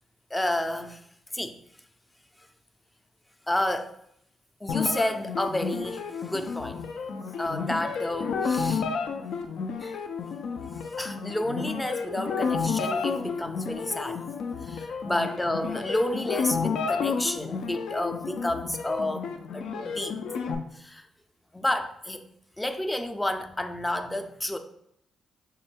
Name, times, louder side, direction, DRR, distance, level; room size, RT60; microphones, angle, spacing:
voice 1, 0.3-1.0 1.3-1.6 3.5-3.9 4.6-6.8 7.4-8.8 9.8-10.0 11.0-14.2 14.6-20.1 20.7-21.1 21.5-22.2 22.6-24.6, left 1 dB, 10° left, 0.4 m, -30 dB
sound 1, 4.7-20.5, left 5 dB, 80° left, 0.4 m, -31 dB
3.5 x 2.2 x 4.2 m
cardioid pair, 75°, 0 cm